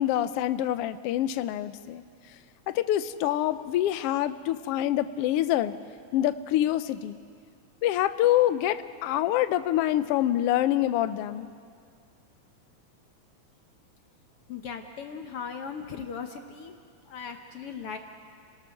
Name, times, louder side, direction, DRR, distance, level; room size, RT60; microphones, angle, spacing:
voice 1, 0.0-2.0 2.7-5.7 6.1-7.2 7.8-11.5, left 13 dB, 80° left, 12 dB, 1.3 m, -26 dB
voice 2, 14.5-16.8 17.1-18.0, left 6 dB, 65° left, 5 dB, 1.6 m, -38 dB
30.0 x 18.0 x 6.5 m, 2.2 s
omnidirectional pair, 3.5 m